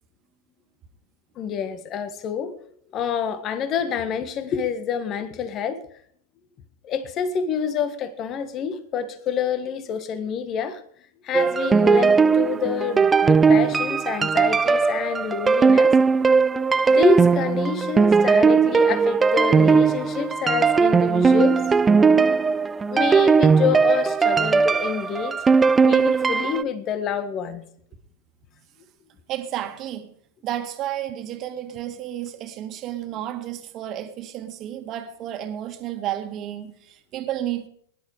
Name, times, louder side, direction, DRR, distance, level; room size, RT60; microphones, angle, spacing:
voice 1, 1.3-2.5 2.9-5.8 6.8-10.8 11.2-15.9 16.9-21.6 22.9-25.4 25.8-27.6, left 7 dB, 35° left, 1.6 m, -27 dB
sound 1, 11.3-26.6, right 5 dB, 15° right, 0.5 m, -18 dB
voice 2, 29.3-30.1 30.4-37.7, right 12 dB, 35° right, 2.0 m, -32 dB
19.5 x 11.0 x 5.0 m
figure-of-eight pair, 95°, 0 cm